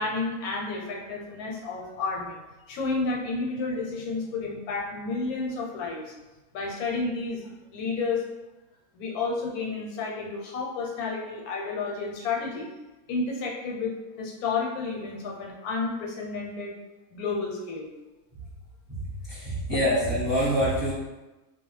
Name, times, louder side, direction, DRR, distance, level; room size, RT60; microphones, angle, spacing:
voice 1, 0.0-2.4 2.7-6.1 6.5-8.2 8.9-12.7 13.1-16.7 17.1-17.9, left 4 dB, 90° left, -1 dB, 1.1 m, -31 dB
voice 2, 18.9-20.9, equal, 20° right, -10 dB, 0.8 m, -26 dB
2.2 x 2.2 x 3.1 m, 1.1 s
omnidirectional pair, 1.5 m